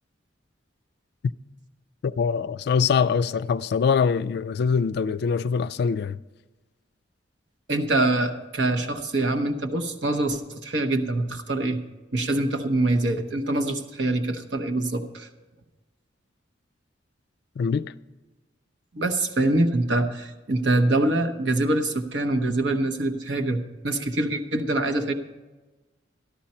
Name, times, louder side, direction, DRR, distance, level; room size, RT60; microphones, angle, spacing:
voice 1, 2.0-6.2 17.6-17.9, left 6 dB, 60° left, 0.3 m, -23 dB
voice 2, 7.7-11.8 12.1-15.3 18.9-25.1, right 2 dB, 70° right, 1.0 m, -24 dB
13.0 x 12.0 x 4.3 m
head